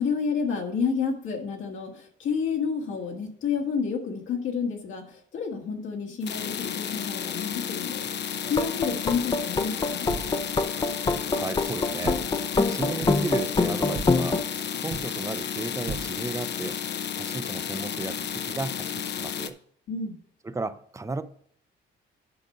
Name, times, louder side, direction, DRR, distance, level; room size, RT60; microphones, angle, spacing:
voice 1, 0.0-8.0 8.5-10.1 19.9-20.1, left 6 dB, 75° left, 1.7 m, -29 dB
sound 1, 6.2-19.5, left 8 dB, 60° left, 0.7 m, -32 dB
sound 2, 8.5-14.4, left 3 dB, 20° left, 0.7 m, -25 dB
sound 3, 9.1-16.4, right 5 dB, 65° right, 1.0 m, -40 dB
voice 2, 11.3-12.2 12.7-14.5 14.8-16.8 17.1-19.6 20.4-21.2, right 3 dB, 15° right, 0.6 m, -34 dB
8.6 x 5.3 x 5.3 m
cardioid pair, 90°, 20 cm